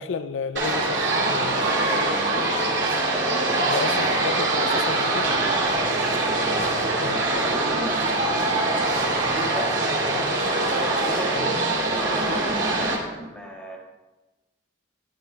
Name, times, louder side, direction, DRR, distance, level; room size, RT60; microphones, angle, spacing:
voice 1, 0.0-2.1 3.7-5.3 7.0-7.3 10.1-10.4 11.3-11.6, left 5 dB, 80° left, 0.4 m, -32 dB
sound 1, 0.6-13.0, right 2 dB, 75° right, 2.3 m, -23 dB
voice 2, 1.5-2.7 2.9-4.2 5.7-6.2 7.1-8.9 9.2-10.0 10.9-13.8, equal, 5° left, 1.6 m, -36 dB
10.5 x 10.5 x 3.4 m
head